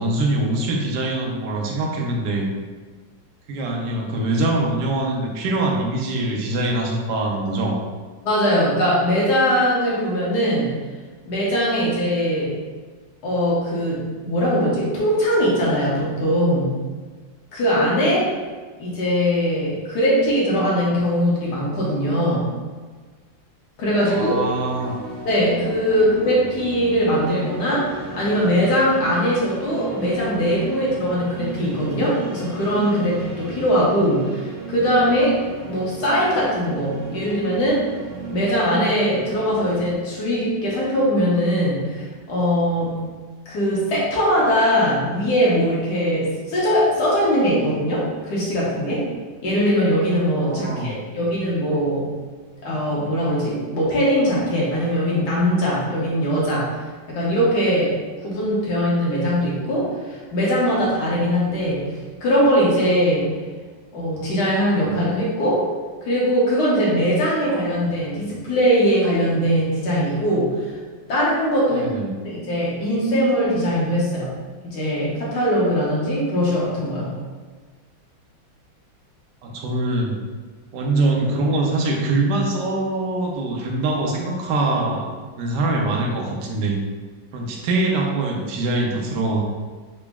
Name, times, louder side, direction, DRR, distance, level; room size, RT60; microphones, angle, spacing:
voice 1, 0.0-2.5 3.5-7.8 24.0-24.9 50.4-51.0 71.7-72.1 79.4-80.2 80.7-85.0 85.4-86.8 87.3-89.4, right 2 dB, 70° right, 0 dB, 1.1 m, -23 dB
voice 2, 8.2-10.7 11.3-12.5 13.2-16.7 17.5-18.3 18.8-22.5 23.8-24.4 25.2-35.4 35.7-37.8 38.3-43.0 43.5-49.1 49.4-52.1 52.6-56.7 57.1-61.9 62.2-63.3 63.9-65.6 66.0-70.8 71.1-71.9 72.2-74.3 74.6-77.1, equal, 60° left, -6 dB, 1.4 m, -21 dB
sound 1, 23.9-40.0, right 3 dB, 85° right, 0.6 m, -35 dB
3.9 x 2.0 x 3.4 m, 1.4 s
omnidirectional pair, 2.1 m